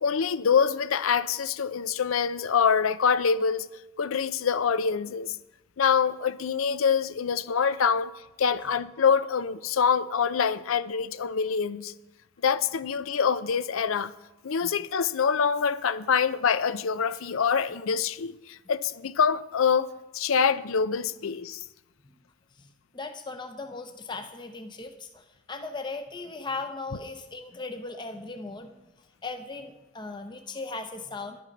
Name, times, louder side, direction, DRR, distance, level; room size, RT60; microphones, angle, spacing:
voice 1, 0.0-3.7 4.0-5.4 5.8-8.1 8.4-11.9 12.4-14.1 14.4-21.6, left 6 dB, 85° left, 0.5 m, -25 dB
voice 2, 22.6-28.8 29.2-31.4, left 3 dB, 20° left, 0.7 m, -38 dB
11.0 x 9.4 x 5.3 m
head